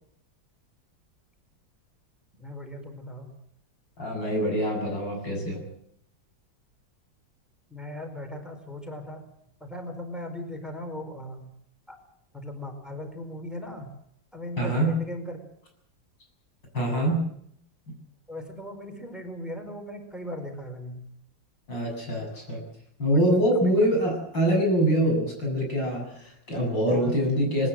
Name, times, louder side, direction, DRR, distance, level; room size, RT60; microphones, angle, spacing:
voice 1, 2.4-3.4 7.7-9.2 9.6-11.5 11.9-12.0 12.3-13.9 14.3-15.4 18.3-21.1 23.1-23.2 23.6-23.9 26.8-27.2, left 1 dB, ahead, 5 dB, 4.8 m, -38 dB
voice 2, 4.0-5.6 14.6-14.9 16.7-17.2 17.9-18.0 21.7-22.6 23.0-27.7, right 1 dB, 75° left, 1 dB, 8.6 m, -24 dB
21.5 x 20.0 x 7.8 m, 0.70 s
omnidirectional pair, 2.0 m